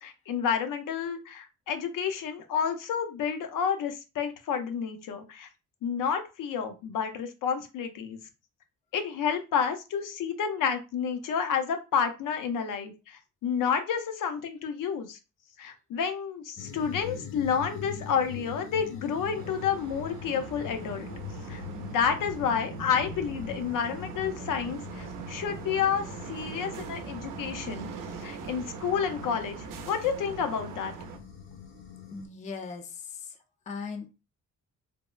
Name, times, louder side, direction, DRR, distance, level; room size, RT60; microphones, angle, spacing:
voice 1, 0.0-5.5 5.8-8.2 8.9-15.2 15.6-21.1 21.5-27.9 28.2-31.0, left 7 dB, 85° left, 7 dB, 0.6 m, -30 dB
sound 1, 16.6-32.3, left 8 dB, 45° left, 0.7 m, -43 dB
sound 2, 19.4-31.2, right 6 dB, 85° right, 0.5 m, -41 dB
voice 2, 32.1-33.2 33.7-34.1, left 5 dB, 25° left, 5 dB, 0.3 m, -38 dB
3.4 x 2.0 x 2.3 m, 0.29 s
wide cardioid pair, 160°, 31 cm